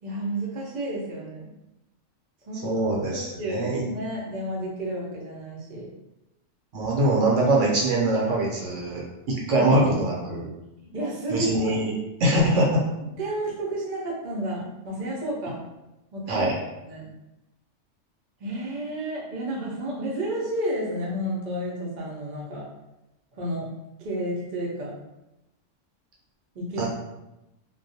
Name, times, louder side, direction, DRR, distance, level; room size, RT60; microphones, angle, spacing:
voice 1, 0.0-1.5 2.5-5.9 9.5-9.7 10.8-11.7 13.2-15.6 16.1-16.5 16.8-17.0 18.4-22.6 23.4-23.7 24.0-24.9 26.5-26.9, right 1 dB, 45° right, -3 dB, 0.6 m, -31 dB
voice 2, 2.6-3.8 6.7-10.5 11.3-11.9 12.2-12.8 16.3-16.6 26.8-26.9, right 1 dB, 80° right, -3 dB, 1.0 m, -23 dB
2.3 x 2.2 x 2.6 m, 0.94 s
omnidirectional pair, 1.3 m